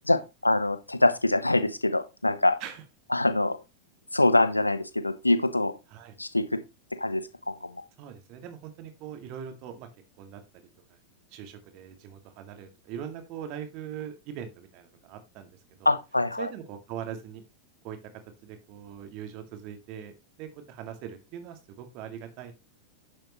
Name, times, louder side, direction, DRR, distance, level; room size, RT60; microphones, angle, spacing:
voice 1, 0.1-2.6 3.1-3.6 4.1-5.7 6.2-6.6 7.0-7.7 15.8-16.5, left 2 dB, 85° left, 11 dB, 1.1 m, -24 dB
voice 2, 8.0-9.9 10.2-10.4 11.3-15.9 16.4-17.4 17.8-18.0 18.4-20.1 20.4-22.5, right 9 dB, 40° right, 7 dB, 2.2 m, -41 dB
10.5 x 7.5 x 3.1 m, 0.25 s
figure-of-eight pair, 90°, 0 cm